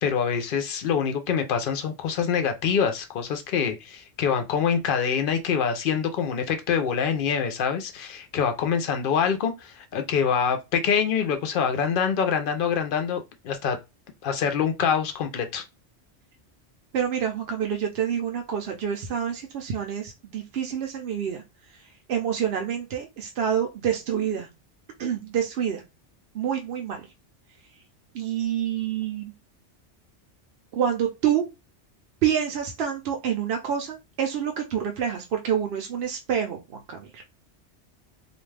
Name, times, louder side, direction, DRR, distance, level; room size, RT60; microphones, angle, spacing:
voice 1, 0.0-13.8 14.2-15.6, left 7 dB, 60° left, 0.6 m, -25 dB
voice 2, 16.9-21.4 21.7-21.8 22.1-24.5 25.0-25.8 26.3-27.1 28.1-29.3 30.7-31.5 32.2-37.2, right 8 dB, 65° right, 0.8 m, -27 dB
2.5 x 2.2 x 3.2 m
omnidirectional pair, 1.2 m